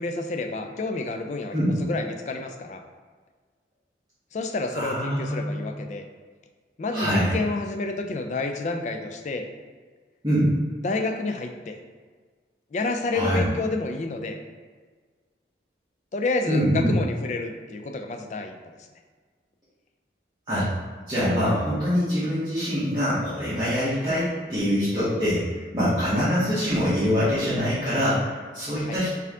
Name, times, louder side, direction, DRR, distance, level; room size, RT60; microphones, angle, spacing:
voice 1, 0.0-1.5 1.8-2.8 4.3-6.0 6.8-9.5 10.8-11.8 12.7-14.4 16.1-18.5 28.9-29.0, left 3 dB, 40° left, 5 dB, 0.3 m, -29 dB
voice 2, 4.7-5.4 6.9-7.4 10.2-10.5 13.1-13.4 16.5-16.9 20.5-20.7 21.1-29.1, equal, 25° right, -13 dB, 1.0 m, -24 dB
4.2 x 2.7 x 3.6 m, 1.5 s
head